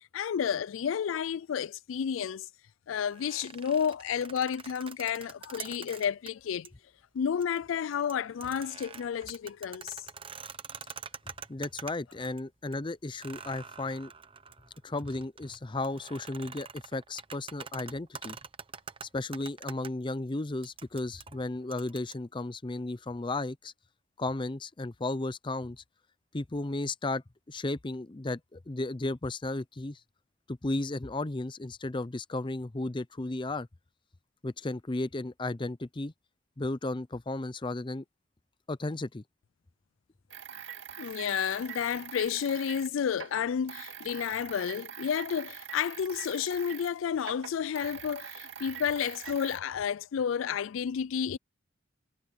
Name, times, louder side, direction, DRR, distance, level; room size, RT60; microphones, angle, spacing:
voice 1, 0.1-2.5 2.9-6.7 7.1-10.1 41.0-51.4, left 8 dB, 85° left, 0.4 m, -31 dB
sound 1, 3.1-6.3 6.6-6.7 7.3-7.6 7.9-12.4 12.7-12.8 13.2-19.9 20.6-22.1, right 6 dB, 25° right, 0.9 m, -45 dB
voice 2, 11.5-14.1 14.8-18.4 19.1-23.7 24.2-25.8 26.3-30.0 30.5-33.7 34.4-36.1 36.6-38.0 38.7-39.2, left 2 dB, 25° left, 0.6 m, -34 dB
sound 2, 40.3-46.9 47.2-49.6, right 8 dB, 65° right, 2.4 m, -44 dB
head